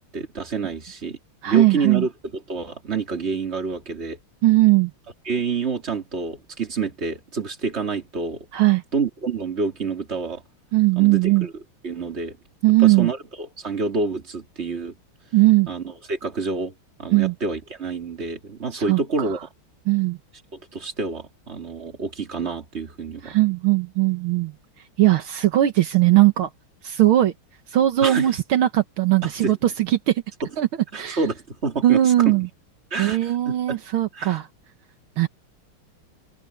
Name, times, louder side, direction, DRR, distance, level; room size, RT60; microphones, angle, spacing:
voice 1, 0.1-1.2 1.4-2.1 2.5-4.2 5.3-8.5 8.9-10.4 11.0-11.5 11.8-12.4 12.8-15.0 15.7-16.7 17.0-19.4 20.5-23.3 28.0-28.4 29.2-29.5 30.9-32.0 32.3-32.4 32.9-33.8 34.1-34.4, right 4 dB, 30° right, 2.9 m, -28 dB
voice 2, 1.4-2.1 4.4-4.9 8.5-8.8 10.7-11.5 12.6-13.1 15.3-15.7 17.1-17.3 18.7-19.0 19.9-20.2 23.2-24.5 25.0-26.5 26.8-27.3 27.7-30.2 30.6-30.7 30.9-31.2 31.8-32.5 33.0-34.5 35.2-35.3, right 15 dB, 75° right, 2.0 m, -19 dB
omnidirectional pair, 2.3 m